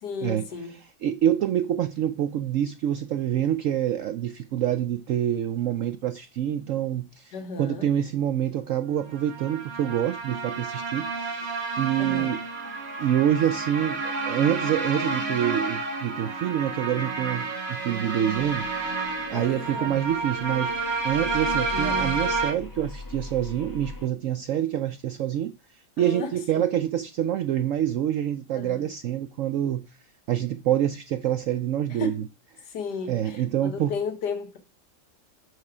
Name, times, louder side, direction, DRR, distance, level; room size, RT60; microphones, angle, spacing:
voice 1, 0.0-0.8 7.3-7.9 12.0-12.3 19.3-20.0 21.7-22.2 26.0-26.4 28.5-28.9 31.9-32.2 32.6-34.6, left 5 dB, 75° left, 1.9 m, -34 dB
voice 2, 1.0-12.4 13.0-25.5 26.0-29.9 30.3-32.1 33.1-33.9, right 11 dB, 75° right, 0.7 m, -26 dB
sound 1, 9.1-22.5, right 3 dB, 40° right, 1.8 m, -30 dB
sound 2, 18.3-24.1, left 2 dB, 15° left, 1.1 m, -41 dB
6.4 x 5.8 x 4.8 m
omnidirectional pair, 1.8 m